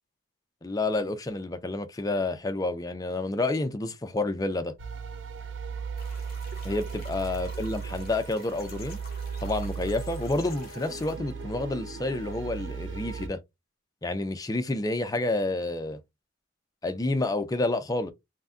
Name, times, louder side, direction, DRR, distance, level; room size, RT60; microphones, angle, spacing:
voice 1, 0.6-4.7 6.6-9.0 9.4-13.4 14.0-16.0 16.8-18.1, left 2 dB, 20° left, 0.4 m, -29 dB
sound 1, 4.8-13.3, right 5 dB, 65° right, 0.6 m, -37 dB
sound 2, 6.0-11.2, left 4 dB, 50° left, 0.9 m, -50 dB
2.5 x 2.1 x 3.5 m
head